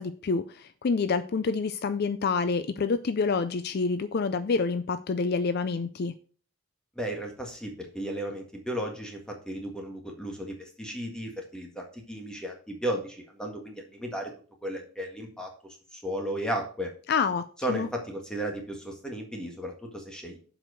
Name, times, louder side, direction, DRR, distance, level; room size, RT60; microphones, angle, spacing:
voice 1, 0.0-6.1 17.1-17.9, left 4 dB, 50° left, 0.4 m, -27 dB
voice 2, 7.0-14.3 14.6-16.9 17.6-20.4, right 1 dB, 5° left, 1.7 m, -35 dB
7.6 x 4.9 x 6.4 m
head